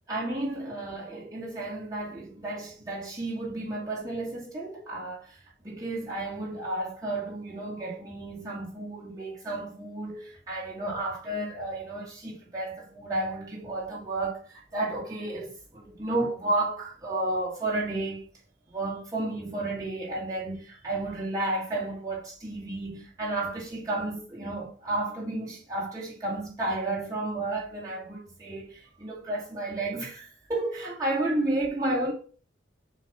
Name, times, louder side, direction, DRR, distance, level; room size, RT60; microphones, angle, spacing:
voice 1, 0.1-18.3 18.7-32.1, right 2 dB, 20° right, 1.9 m, -32 dB
7.2 x 2.8 x 5.6 m
head